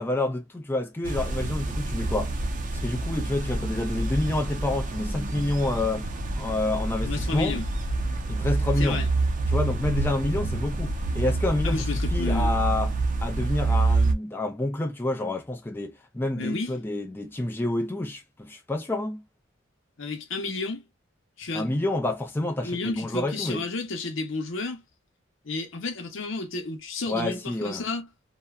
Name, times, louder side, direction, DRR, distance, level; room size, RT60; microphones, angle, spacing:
voice 1, 0.0-2.3 2.8-6.1 6.4-7.6 8.3-9.0 9.5-11.8 12.1-12.9 13.2-19.2 21.5-23.6 27.1-27.8, left 2 dB, 10° left, 0.4 m, -28 dB
sound 1, 1.0-14.1, right 2 dB, 40° right, 0.6 m, -27 dB
voice 2, 7.0-7.7 8.8-9.1 11.6-12.6 16.4-16.7 20.0-20.9 21.4-21.7 22.6-24.8 25.4-28.1, left 3 dB, 75° left, 0.8 m, -31 dB
2.7 x 2.2 x 2.3 m
head